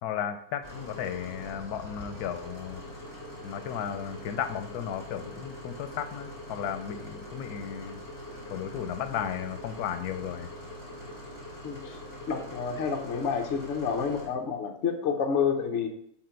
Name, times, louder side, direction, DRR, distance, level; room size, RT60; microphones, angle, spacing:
voice 1, 0.0-2.8 3.4-8.0 8.5-10.5, left 9 dB, 90° left, 9 dB, 1.1 m, -34 dB
sound 1, 0.6-14.3, left 1 dB, 10° left, 1.8 m, -43 dB
voice 2, 11.6-12.0 12.3-15.9, left 6 dB, 55° left, 4 dB, 1.1 m, -29 dB
5.9 x 4.9 x 4.4 m, 0.67 s
omnidirectional pair, 1.6 m